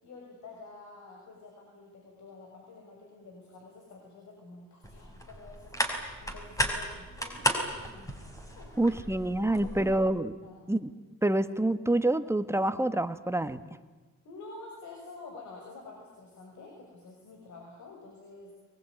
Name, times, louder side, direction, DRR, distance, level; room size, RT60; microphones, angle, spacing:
voice 1, 0.0-8.2 8.6-9.0 9.4-9.8 10.4-10.7 14.2-18.5, left 3 dB, 70° left, 0 dB, 6.4 m, -49 dB
sound 1, 4.8-10.0, equal, 10° left, 5.5 m, -34 dB
voice 2, 8.8-10.3 10.7-10.9 11.2-13.6, right 1 dB, 10° right, 11 dB, 1.4 m, -27 dB
23.0 x 21.5 x 9.4 m, 1.3 s
cardioid pair, 90°, 30 cm